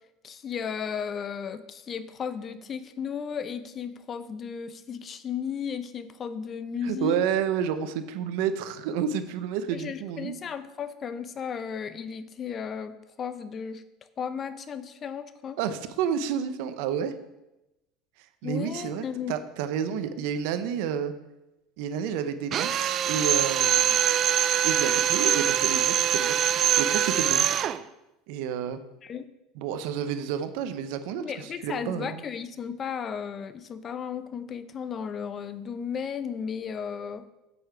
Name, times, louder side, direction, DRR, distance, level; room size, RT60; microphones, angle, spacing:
voice 1, 0.2-7.2 9.7-13.8 14.2-15.6 18.4-19.3 29.0-29.3 31.2-37.3, left 7 dB, 35° left, 13 dB, 0.6 m, -34 dB
voice 2, 6.8-10.3 15.6-17.1 18.4-21.1 21.8-24.1 24.6-26.4 26.8-27.5 28.3-28.8 29.6-32.2, right 8 dB, 75° right, 11 dB, 0.8 m, -30 dB
Drill, 22.5-27.8, right 10 dB, 40° right, 0.4 m, -23 dB
8.6 x 7.0 x 4.7 m, 0.95 s
supercardioid pair, 125°, 0 cm